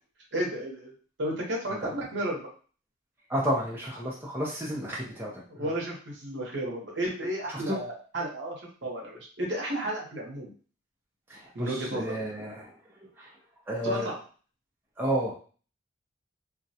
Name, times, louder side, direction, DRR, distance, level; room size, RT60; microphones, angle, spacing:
voice 1, 0.3-0.9 1.2-2.5 5.5-10.5 11.5-12.1 13.8-14.1, right 1 dB, 60° right, -1 dB, 0.8 m, -32 dB
voice 2, 3.3-5.7 7.5-7.8 11.3-12.8 13.2-13.3 13.7-14.1 15.0-15.3, equal, 10° right, -5 dB, 0.4 m, -31 dB
2.3 x 2.1 x 2.7 m, 0.40 s
head